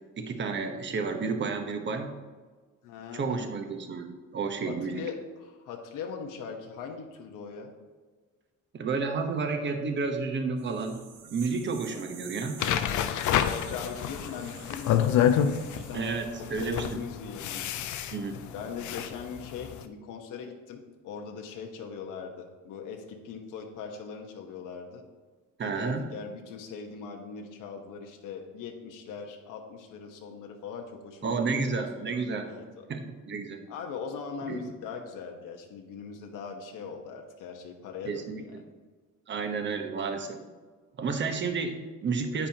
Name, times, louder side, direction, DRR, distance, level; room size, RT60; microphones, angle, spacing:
voice 1, 0.2-2.1 3.1-5.0 8.7-11.0 11.3-12.6 15.9-17.0 18.1-18.4 25.6-26.0 31.2-32.5 32.9-33.6 34.5-34.6 38.0-38.6 39.3-40.4 41.0-42.5, right 4 dB, 35° right, 5 dB, 1.0 m, -31 dB
voice 2, 2.8-3.5 4.7-7.7 11.9-12.2 13.3-15.3 15.6-16.1 16.4-17.7 18.5-25.0 25.6-31.4 31.9-32.9 33.7-38.6, left 6 dB, 90° left, 2 dB, 1.2 m, -40 dB
sound 1, 10.6-16.4, right 6 dB, 80° right, 1.3 m, -49 dB
sound 2, 12.6-19.8, left 9 dB, 70° left, 0.6 m, -28 dB
10.0 x 8.9 x 2.9 m, 1.4 s
cardioid pair, 145°, 31 cm